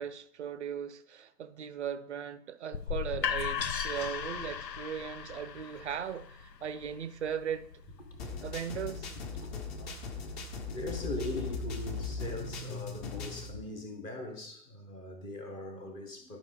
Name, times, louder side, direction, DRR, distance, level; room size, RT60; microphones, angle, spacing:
voice 1, 0.0-7.7 8.4-9.1, right 8 dB, 45° right, 0.5 m, -38 dB
sound 1, 2.7-8.5, left 7 dB, 90° left, 0.6 m, -37 dB
sound 2, 8.2-13.5, left 4 dB, 40° left, 1.2 m, -39 dB
voice 2, 10.7-16.4, left 2 dB, 10° left, 0.6 m, -40 dB
11.0 x 5.1 x 3.6 m
figure-of-eight pair, 115°, 49 cm